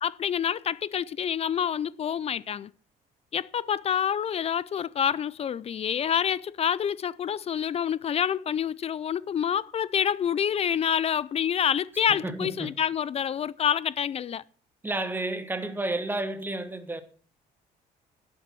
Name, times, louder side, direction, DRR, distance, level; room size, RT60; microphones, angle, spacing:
voice 1, 0.0-2.7 3.3-14.4, left 8 dB, 35° left, 0.4 m, -27 dB
voice 2, 12.1-12.7 14.8-17.0, right 2 dB, 10° right, 1.4 m, -31 dB
11.0 x 8.7 x 6.0 m
cardioid pair, 110°, 17 cm